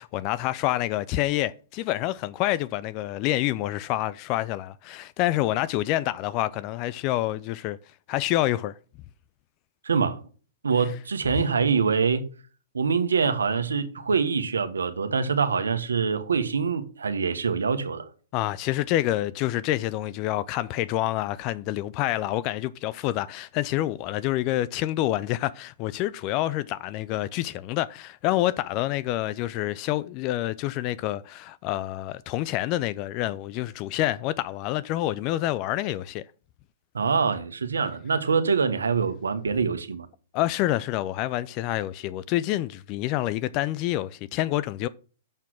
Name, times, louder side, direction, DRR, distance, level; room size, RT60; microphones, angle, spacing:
voice 1, 0.0-7.8 8.1-8.7 18.3-36.2 40.3-44.9, left 15 dB, 40° left, 0.4 m, -27 dB
voice 2, 9.8-10.2 10.6-12.3 12.7-18.1 36.9-40.1, right 5 dB, 85° right, 1.2 m, -25 dB
6.6 x 6.0 x 6.0 m
hypercardioid pair, 120°, 0 cm